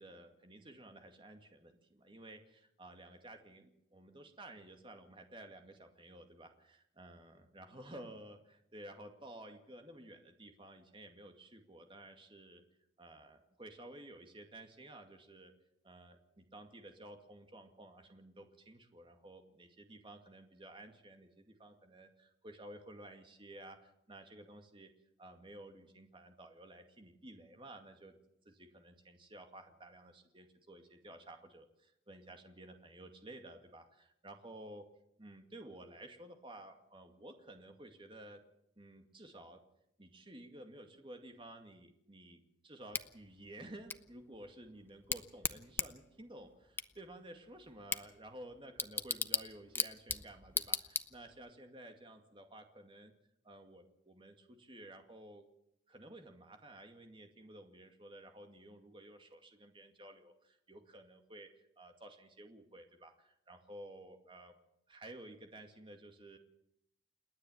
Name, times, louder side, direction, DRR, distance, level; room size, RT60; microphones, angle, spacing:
voice 1, 0.0-12.6 13.0-15.5 15.8-24.9 25.2-28.1 28.4-34.9 35.2-38.4 38.8-39.6 40.0-53.1 53.4-55.5 55.9-64.5 64.9-66.4, right 1 dB, 30° right, 5 dB, 2.2 m, -53 dB
Bicycle / Tick, 42.9-51.5, left 4 dB, 10° left, 0.7 m, -40 dB
29.0 x 9.8 x 9.1 m, 0.77 s
head